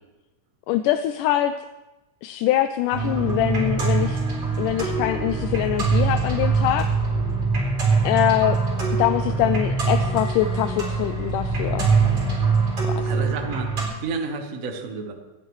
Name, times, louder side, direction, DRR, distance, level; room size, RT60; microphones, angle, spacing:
voice 1, 0.7-1.5 2.2-4.2 4.6-6.9 8.0-8.6 9.0-11.9 13.1-13.3, left 12 dB, 85° left, 9 dB, 2.1 m, -23 dB
sound 1, 2.9-13.8, right 4 dB, 40° right, 4.3 m, -23 dB
voice 2, 13.0-15.1, right 4 dB, 85° right, 4 dB, 0.7 m, -31 dB
27.0 x 10.5 x 3.2 m, 1.0 s
omnidirectional pair, 3.7 m